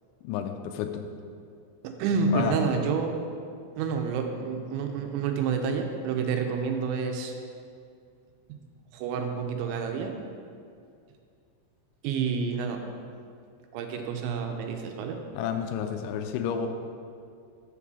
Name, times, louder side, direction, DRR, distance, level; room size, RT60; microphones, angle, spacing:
voice 1, 0.2-1.0 2.3-2.5 15.4-16.7, left 8 dB, 85° left, 6 dB, 2.9 m, -30 dB
voice 2, 1.8-3.2 3.8-7.3 8.9-10.2 12.0-12.8 13.7-15.2, right 5 dB, 85° right, 4 dB, 2.9 m, -29 dB
6.8 x 4.9 x 6.8 m, 2.3 s
omnidirectional pair, 5.3 m